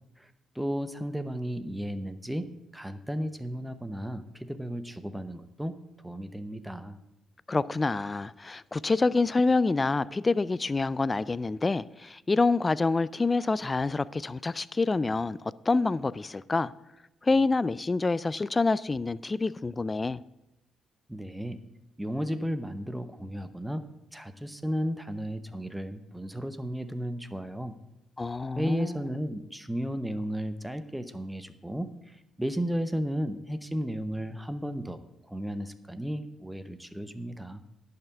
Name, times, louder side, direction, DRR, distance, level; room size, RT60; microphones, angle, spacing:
voice 1, 0.2-5.7 6.0-7.0 21.1-21.6 22.0-23.8 24.1-27.8 28.6-35.0 35.3-37.6, equal, 5° right, 0.8 m, -34 dB
voice 2, 7.5-15.4 15.7-16.7 17.2-20.2 28.2-29.0, left 3 dB, 25° left, 0.4 m, -27 dB
11.0 x 5.8 x 7.9 m
cardioid pair, 90°, 0 cm